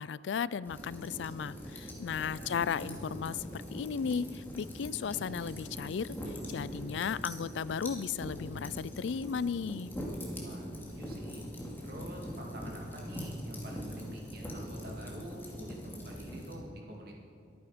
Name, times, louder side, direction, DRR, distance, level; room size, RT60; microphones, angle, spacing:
voice 1, 0.0-9.9, left 6 dB, 90° left, 19 dB, 0.4 m, -35 dB
sound 1, 0.7-16.5, equal, 10° left, 2.4 m, -42 dB
voice 2, 2.1-2.6 10.4-11.4 11.8-17.2, right 1 dB, 55° right, -1 dB, 2.6 m, -47 dB
23.5 x 9.6 x 5.1 m, 2.3 s
head